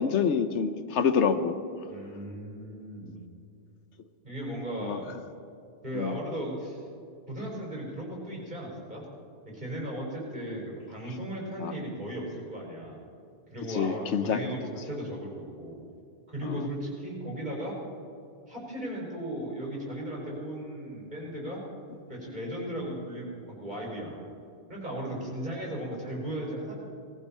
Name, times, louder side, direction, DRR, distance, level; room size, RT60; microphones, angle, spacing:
voice 1, 0.0-1.6 4.8-5.0 5.9-6.2 11.6-11.7 13.8-14.4 16.5-16.6, left 6 dB, 85° left, 10 dB, 1.1 m, -26 dB
voice 2, 1.9-3.2 4.2-5.2 5.8-6.8 7.3-9.0 9.5-13.0 13.5-15.8 16.3-17.8 18.5-21.6 22.1-24.2 24.7-26.9, right 1 dB, 40° right, -3 dB, 5.2 m, -36 dB
19.0 x 15.0 x 4.4 m, 2.5 s
omnidirectional pair, 1.2 m